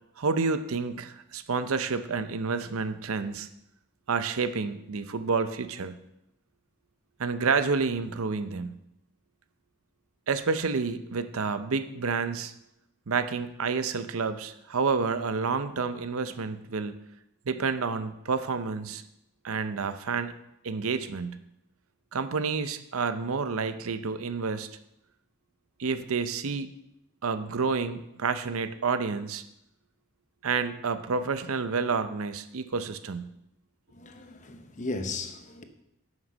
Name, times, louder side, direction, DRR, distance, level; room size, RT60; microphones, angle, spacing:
voice 1, 0.2-3.5 4.1-5.9 7.2-8.7 10.3-12.5 13.1-17.0 17.5-19.0 19.4-20.3 20.6-21.4 22.1-24.7 25.8-26.7 27.2-29.4 30.4-33.3, right 4 dB, 80° right, 0.6 m, -29 dB
voice 2, 33.9-35.6, left 3 dB, 35° left, 0.8 m, -36 dB
9.3 x 6.3 x 6.2 m
head